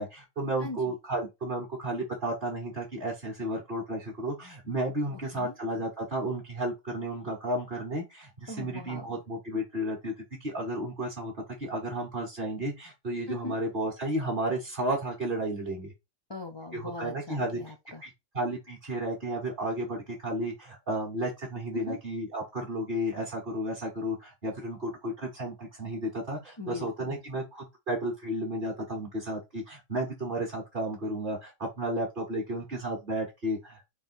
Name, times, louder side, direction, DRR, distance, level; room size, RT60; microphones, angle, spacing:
voice 1, 0.0-10.1 10.4-11.3 11.6-15.9 16.7-17.6 18.0-33.8, right 1 dB, 45° right, 1.5 m, -33 dB
voice 2, 5.1-5.5 8.5-9.2 13.3-13.6 16.3-18.0 21.9-22.0 26.6-27.2, left 2 dB, 40° left, 0.4 m, -40 dB
3.6 x 3.1 x 4.5 m
omnidirectional pair, 1.3 m